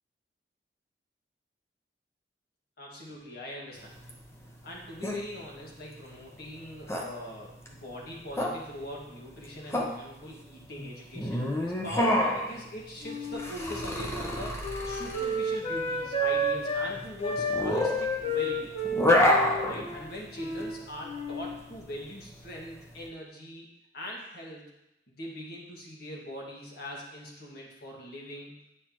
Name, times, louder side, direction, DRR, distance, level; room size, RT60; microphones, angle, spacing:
voice 1, 2.8-3.9 4.6-18.7 19.5-23.7 23.9-24.7 25.1-28.6, equal, 60° left, -2 dB, 1.9 m, -42 dB
sound 1, 3.8-23.0, left 1 dB, 15° left, 0.8 m, -29 dB
Wind instrument woodwind instrument, 13.0-16.9 17.2-20.8 21.0-21.6, equal, 35° left, 1.1 m, -32 dB
8.9 x 6.5 x 3.1 m, 0.86 s
head